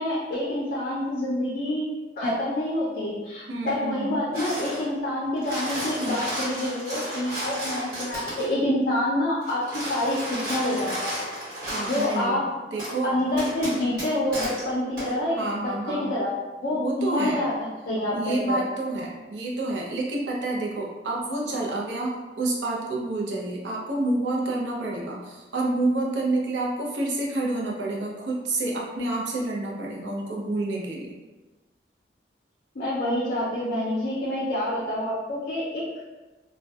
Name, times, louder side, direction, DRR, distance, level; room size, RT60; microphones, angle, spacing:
voice 1, 0.0-1.9 2.2-9.6 9.9-11.1 11.9-12.4 13.0-15.4 15.6-16.3 16.6-17.5 17.9-18.6 32.8-35.8, left 1 dB, 50° left, -7 dB, 0.4 m, -27 dB
voice 2, 3.5-4.2 11.7-12.4 12.7-13.1 15.4-16.1 16.7-17.4 18.1-31.1, right 2 dB, 85° right, -3 dB, 0.5 m, -28 dB
sound 1, 4.3-4.9 5.3-8.5 9.4-12.2 12.8-12.9 13.4-14.6 15.0-15.1, equal, 50° right, 1.0 m, -33 dB
2.5 x 2.1 x 2.2 m, 1.2 s
head